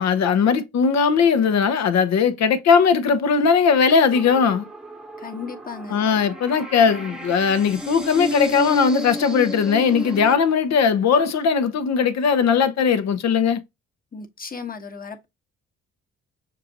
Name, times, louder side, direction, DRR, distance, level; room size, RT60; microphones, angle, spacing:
voice 1, 0.0-4.7 5.9-13.6, left 6 dB, 65° left, 0.9 m, -19 dB
sound 1, 4.1-10.4, equal, ahead, 0.9 m, -32 dB
voice 2, 5.2-6.0 14.1-15.3, left 5 dB, 30° left, 1.2 m, -35 dB
6.5 x 2.6 x 2.8 m
supercardioid pair, 70°, 29 cm